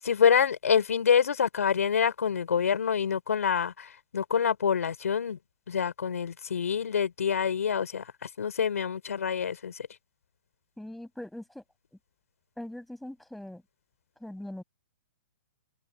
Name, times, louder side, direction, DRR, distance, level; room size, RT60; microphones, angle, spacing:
voice 1, 0.0-5.4 5.7-9.8, left 7 dB, 90° left, 6.0 m, -26 dB
voice 2, 10.8-11.6 12.6-13.6 14.2-14.6, left 1 dB, ahead, 6.9 m, -41 dB
hypercardioid pair, 160°, 8 cm